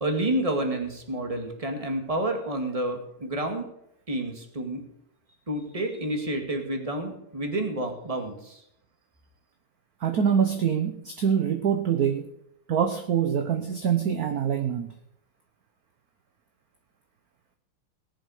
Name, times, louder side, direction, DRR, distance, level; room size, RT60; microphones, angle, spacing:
voice 1, 0.0-3.7 4.1-4.8 5.5-8.6, right 1 dB, 15° right, 4 dB, 1.8 m, -29 dB
voice 2, 10.0-12.3 12.7-14.9, right 8 dB, 55° right, 7 dB, 1.1 m, -25 dB
17.5 x 10.5 x 4.9 m, 0.77 s
omnidirectional pair, 2.4 m